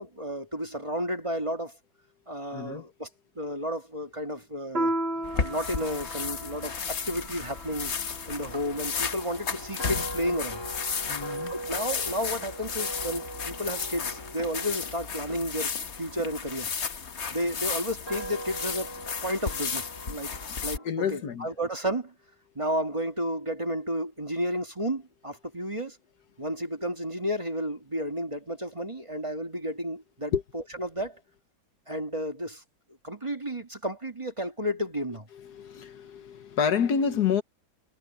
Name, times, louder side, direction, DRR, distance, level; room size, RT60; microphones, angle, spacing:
voice 1, 0.0-1.7 2.3-3.1 3.4-4.9 5.3-7.9 8.3-10.6 11.5-15.7 16.0-16.7 17.3-18.9 19.2-20.3 20.6-22.1 22.6-26.0 26.4-31.2 31.9-32.6 33.0-35.3, equal, 20° right, 1.9 m, -32 dB
voice 2, 2.5-2.8 11.1-11.5 20.8-21.5 30.3-30.4 35.3-37.4, left 7 dB, 75° left, 1.7 m, -28 dB
Piano, 4.8-9.7, right 1 dB, 40° right, 2.5 m, -35 dB
sound 1, 5.2-20.8, left 5 dB, 45° left, 1.4 m, -34 dB
sound 2, 8.5-16.7 17.4-20.9, right 1 dB, 15° left, 2.4 m, -41 dB
omnidirectional pair, 1.8 m